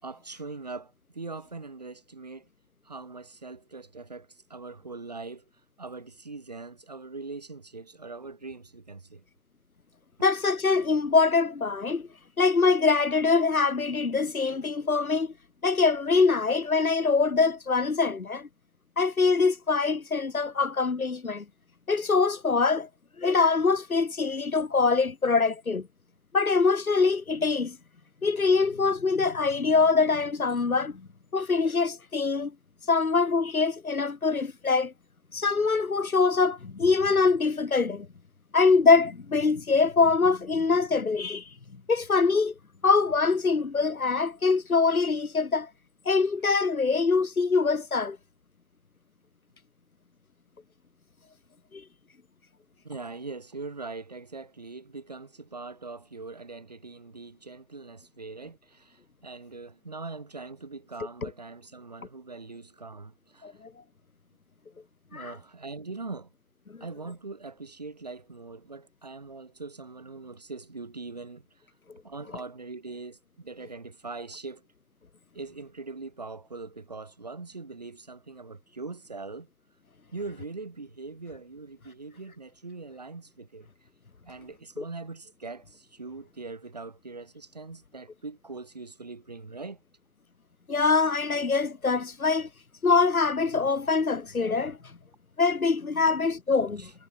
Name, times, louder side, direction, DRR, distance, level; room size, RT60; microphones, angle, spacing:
voice 1, 0.0-2.5 2.8-5.5 5.8-9.2 52.8-63.6 65.1-66.3 66.8-71.5 72.0-74.7 75.3-79.5 80.1-83.7 84.3-89.8 96.8-96.9, right 3 dB, 30° right, 3.0 m, -41 dB
voice 2, 10.2-12.1 12.4-15.3 15.6-18.5 19.0-21.4 21.9-22.9 23.2-25.9 26.3-27.8 28.2-31.0 31.3-32.5 32.9-34.9 35.3-38.1 38.5-41.4 41.9-42.5 42.8-45.7 46.0-48.2 51.7-51.8 61.2-61.3 63.4-63.7 65.1-65.3 66.7-66.8 84.8-84.9 90.7-92.5 92.8-94.8 95.4-96.9, left 4 dB, 70° left, 1.7 m, -24 dB
figure-of-eight pair, 180°, 44 cm